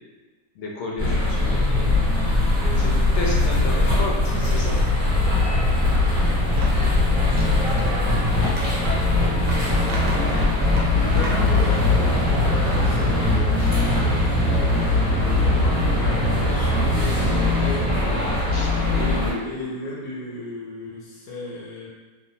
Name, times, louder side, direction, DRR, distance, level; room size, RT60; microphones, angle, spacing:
voice 1, 0.6-1.9 2.8-4.8 13.6-13.7 18.5-19.1, left 2 dB, 65° left, -2 dB, 0.7 m, -32 dB
sound 1, 1.0-19.3, left 2 dB, 20° right, 1.2 m, -20 dB
sound 2, 5.9-6.9 7.3-12.0, right 1 dB, 70° right, 1.0 m, -35 dB
voice 2, 10.9-18.2 18.9-21.9, left 1 dB, 85° left, -6 dB, 1.1 m, -34 dB
2.7 x 2.1 x 2.7 m, 1.3 s
omnidirectional pair, 1.5 m